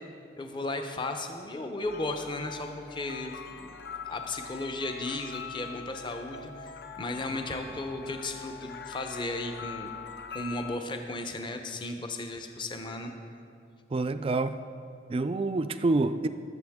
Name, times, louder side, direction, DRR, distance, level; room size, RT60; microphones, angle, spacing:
voice 1, 0.4-3.7 4.0-9.9 10.3-13.1, left 2 dB, 25° left, 5 dB, 0.7 m, -35 dB
sound 1, 1.8-10.8, left 6 dB, 55° left, 0.5 m, -43 dB
voice 2, 13.9-14.6 15.1-16.3, right 3 dB, 30° right, 11 dB, 0.3 m, -27 dB
19.5 x 7.1 x 3.6 m, 2.5 s
head